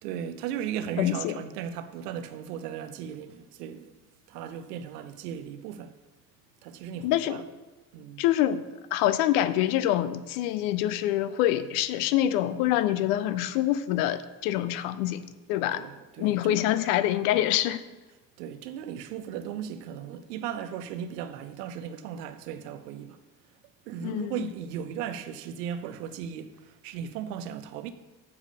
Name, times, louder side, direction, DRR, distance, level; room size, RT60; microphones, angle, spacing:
voice 1, 0.0-3.9 4.3-5.9 6.6-7.4 7.9-8.2 15.7-16.6 18.4-23.2 23.9-27.9, right 9 dB, 70° right, 0.7 m, -37 dB
voice 2, 1.0-1.4 7.0-7.4 8.2-8.6 8.9-15.2 15.5-15.8 16.2-17.8 24.0-24.5, left 13 dB, 65° left, 0.6 m, -25 dB
7.1 x 4.8 x 6.2 m
figure-of-eight pair, 45°, 50 cm